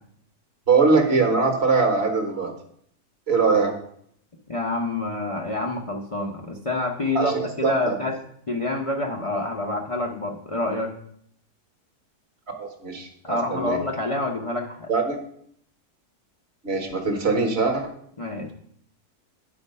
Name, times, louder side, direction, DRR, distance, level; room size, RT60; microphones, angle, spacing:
voice 1, 0.7-2.5 3.3-3.8 7.1-8.0 12.6-13.8 14.9-15.2 16.6-17.9, right 4 dB, 45° right, 3 dB, 1.4 m, -22 dB
voice 2, 4.5-7.3 7.6-8.2 8.5-10.9 13.2-14.9 18.2-18.5, left 2 dB, 35° left, 1 dB, 0.5 m, -27 dB
9.6 x 4.2 x 5.4 m, 0.66 s
omnidirectional pair, 1.6 m